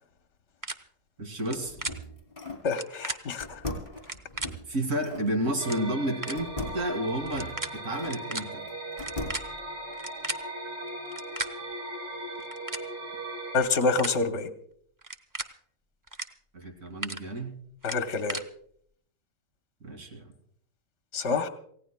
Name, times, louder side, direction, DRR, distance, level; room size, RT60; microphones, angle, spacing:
sound 1, 0.6-0.7 1.4-1.6 1.8-1.9 2.7-3.2 4.0-4.5 5.3-5.4 5.6-5.8 6.2-6.4 7.3-7.7 8.0-8.4 9.0-10.4 11.1-11.5 12.4-12.8 13.6-14.1 15.0-15.5 16.1-16.3 16.6-17.2 17.8-18.4, right 2 dB, 25° right, 0.4 m, -34 dB
voice 1, 1.2-1.8 4.7-8.7 16.5-17.6 19.8-20.3, right 1 dB, 90° right, 4 dB, 2.8 m, -31 dB
sound 2, 1.3-2.7 3.4-5.3 6.4-8.2 8.7-9.6, left 2 dB, 30° left, 3.1 m, -39 dB
voice 2, 2.6-3.6 13.5-14.5 17.8-18.4 21.1-21.5, left 4 dB, 60° left, 6 dB, 1.3 m, -27 dB
sound 3, 5.6-13.6, right 2 dB, 45° right, 2.8 m, -38 dB
28.0 x 16.5 x 2.2 m, 0.66 s
omnidirectional pair, 1.4 m